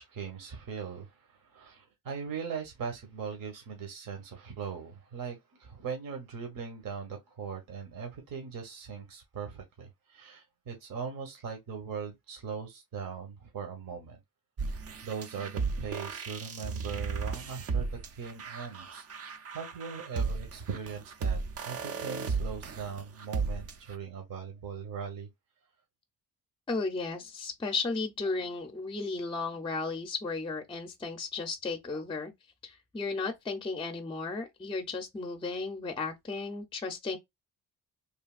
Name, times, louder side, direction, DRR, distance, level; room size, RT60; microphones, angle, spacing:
voice 1, 0.0-14.2 14.7-19.0 19.5-21.4 21.6-25.3, right 6 dB, 65° right, 1.0 m, -40 dB
sound 1, 14.6-23.9, right 4 dB, 40° right, 0.5 m, -35 dB
voice 2, 26.7-32.3 32.6-37.2, left 3 dB, 15° left, 0.5 m, -34 dB
3.3 x 2.7 x 2.4 m
cardioid pair, 125°, 37 cm